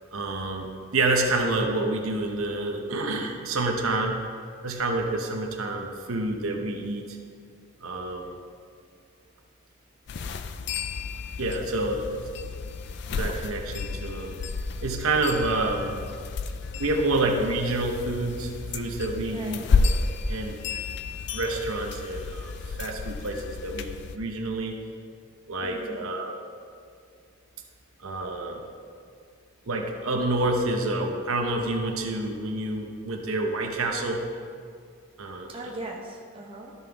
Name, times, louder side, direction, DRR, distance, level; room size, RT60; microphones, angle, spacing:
voice 1, 0.1-4.1 4.6-7.2 7.8-8.3 11.4-12.2 13.2-14.3 14.8-16.0 16.8-20.6 21.3-24.7 25.5-26.4 28.0-28.6 29.6-34.2 35.2-35.5, right 2 dB, 80° right, 2 dB, 0.9 m, -28 dB
sound 1, 10.1-24.2, left 4 dB, 55° left, 0.4 m, -31 dB
voice 2, 19.3-19.7 25.6-26.1 35.5-36.7, right 2 dB, 25° right, -2 dB, 0.9 m, -39 dB
12.5 x 5.5 x 3.5 m, 2.3 s
head